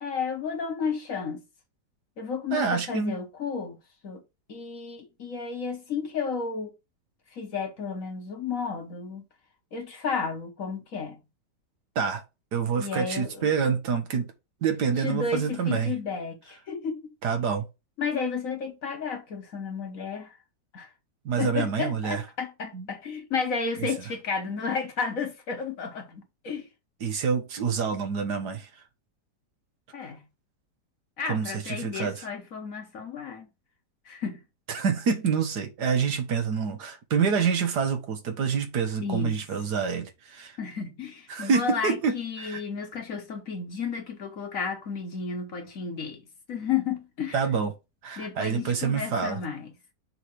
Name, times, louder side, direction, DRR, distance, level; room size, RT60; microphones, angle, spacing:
voice 1, 0.0-1.4 2.2-3.8 4.0-4.2 4.5-6.7 7.3-9.2 9.7-11.2 12.8-13.5 15.0-17.1 18.0-20.4 20.7-20.9 21.4-26.7 29.9-30.2 31.2-33.5 34.0-34.4 39.0-39.4 40.6-47.4 48.2-49.7, left 5 dB, 55° left, 1.3 m, -32 dB
voice 2, 2.5-3.2 11.9-12.2 12.5-14.3 14.6-15.9 17.2-17.7 21.2-22.2 22.7-22.9 23.8-23.9 27.0-28.7 31.3-32.3 34.7-40.6 41.3-42.6 47.3-47.7 48.0-49.4, right 6 dB, 65° right, 1.6 m, -27 dB
5.6 x 3.3 x 5.7 m
omnidirectional pair, 2.0 m